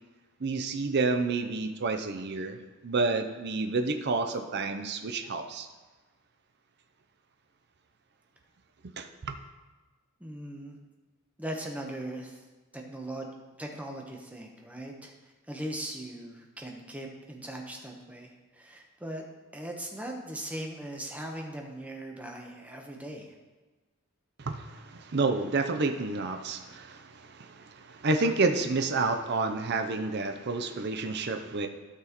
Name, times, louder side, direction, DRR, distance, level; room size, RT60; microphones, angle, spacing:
voice 1, 0.4-2.6 2.8-5.7 9.0-9.3 24.4-31.7, right 3 dB, 50° right, 6 dB, 0.6 m, -29 dB
voice 2, 10.2-10.8 11.4-12.4 12.7-19.2 19.5-23.3, right 1 dB, 5° right, 1 dB, 0.9 m, -39 dB
13.0 x 6.0 x 3.0 m, 1.2 s
head